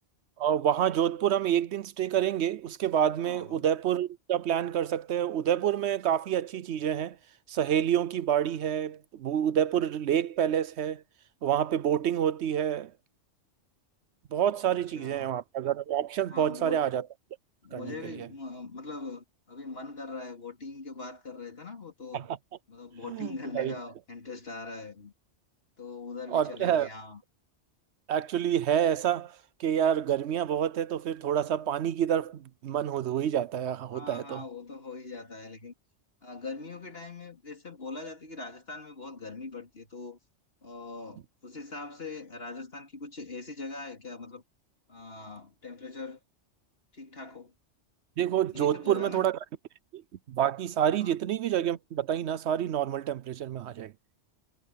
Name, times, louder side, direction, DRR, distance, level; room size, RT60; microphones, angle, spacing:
voice 1, 0.4-7.2 7.5-11.0 11.4-12.9 14.3-17.1 17.7-18.1 22.1-22.4 23.1-23.7 26.3-26.9 28.1-34.4 48.2-49.4 49.9-50.0 50.3-53.9, right 10 dB, 70° right, 0.9 m, -28 dB
voice 2, 3.2-3.7 14.7-15.3 16.3-16.9 17.6-22.3 22.7-25.1 25.8-27.2 33.9-35.7 36.2-40.2 40.6-44.4 44.9-46.2 46.9-47.5 48.5-49.3 51.0-51.1, left 3 dB, 55° left, 3.4 m, -42 dB
omnidirectional pair, 1.2 m